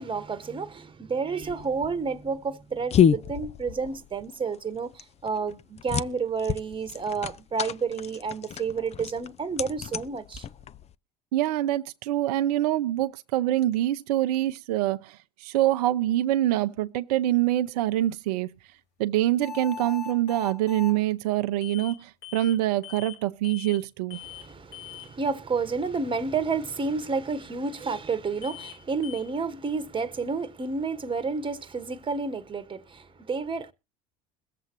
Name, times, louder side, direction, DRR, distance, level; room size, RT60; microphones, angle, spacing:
voice 1, 0.0-10.5 24.2-33.7, right 4 dB, 25° right, 1.3 m, -30 dB
sound 1, 1.4-10.9, left 8 dB, 35° left, 0.5 m, -29 dB
voice 2, 11.3-18.5 19.0-24.2, right 14 dB, 75° right, 0.6 m, -25 dB
sound 2, 19.4-21.0 21.6-22.0 22.2-22.6 22.8-23.2 23.4-23.8 24.1-24.5 24.7-25.1 28.4-28.8 29.0-29.2, left 8 dB, 65° left, 3.5 m, -40 dB
22.0 x 7.6 x 3.0 m
hypercardioid pair, 75°, 20 cm